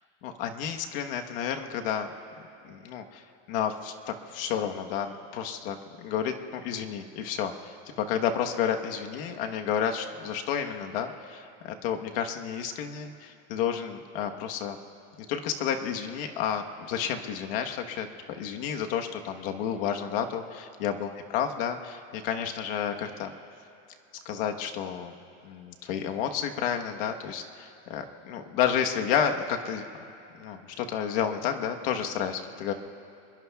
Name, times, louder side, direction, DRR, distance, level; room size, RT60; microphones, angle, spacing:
voice 1, 0.2-2.1 2.6-3.2 3.5-14.8 15.3-23.3 24.2-25.1 25.4-29.8 30.4-32.7, left 8 dB, 50° left, 4 dB, 1.3 m, -31 dB
27.5 x 21.5 x 2.4 m, 2.8 s
supercardioid pair, 180°, 35 cm